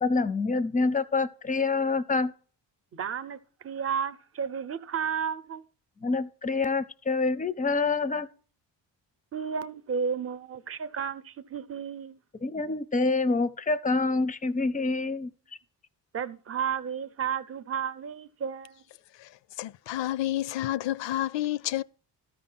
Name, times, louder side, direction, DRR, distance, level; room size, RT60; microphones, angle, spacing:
voice 1, 0.0-2.3 6.0-8.3 12.4-15.3, left 3 dB, 20° left, 0.5 m, -26 dB
voice 2, 2.9-5.6 9.3-12.2 16.1-18.8, right 7 dB, 35° right, 0.7 m, -32 dB
voice 3, 19.1-21.8, left 14 dB, 80° left, 0.6 m, -30 dB
13.5 x 5.7 x 5.6 m
cardioid pair, 160°, 43 cm